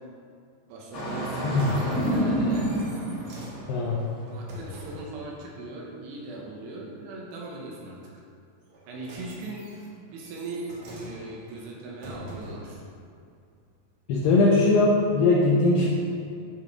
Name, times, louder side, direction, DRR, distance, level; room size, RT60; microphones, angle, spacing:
voice 1, 0.7-2.7 4.3-8.2 8.9-9.7 10.1-12.8, right 2 dB, 80° right, -2 dB, 3.1 m, -39 dB
Engine starting, 0.9-3.9, right 1 dB, 55° left, 1.8 m, -28 dB
voice 2, 1.4-1.7 3.7-4.0 14.1-15.9, left 2 dB, 80° left, -3 dB, 2.7 m, -20 dB
sound 1, 1.4-5.2 8.6-12.8 13.5-13.6, equal, 65° right, 2.0 m, -45 dB
10.5 x 5.9 x 3.6 m, 2.4 s
omnidirectional pair, 5.0 m